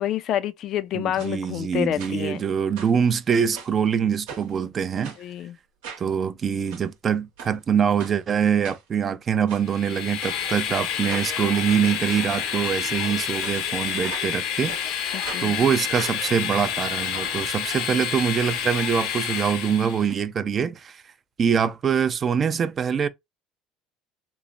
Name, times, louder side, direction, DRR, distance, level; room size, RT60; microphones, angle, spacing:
voice 1, 0.0-2.4 5.2-5.6 15.1-15.6, left 11 dB, 55° left, 0.3 m, -28 dB
voice 2, 0.9-5.1 6.0-14.8 15.4-21.0 21.4-23.1, right 7 dB, 35° right, 0.4 m, -24 dB
sound 1, 1.2-1.3 2.0-2.4 2.7-3.8 4.3-4.6 5.0-5.2 5.8-6.1 6.5-6.8 7.4-7.5 8.0-8.2 8.6-9.1 9.5-9.7 10.2-10.4 11.1-11.3 11.8-11.9 12.6-12.8 13.4-14.4 14.7-14.8 15.2-15.5 15.9-17.5 17.8-17.9 18.1-18.2, right 6 dB, 90° right, 0.9 m, -40 dB
Train, 9.6-20.1, left 8 dB, 75° left, 0.7 m, -29 dB
3.1 x 2.0 x 2.5 m
supercardioid pair, 100°, 0 cm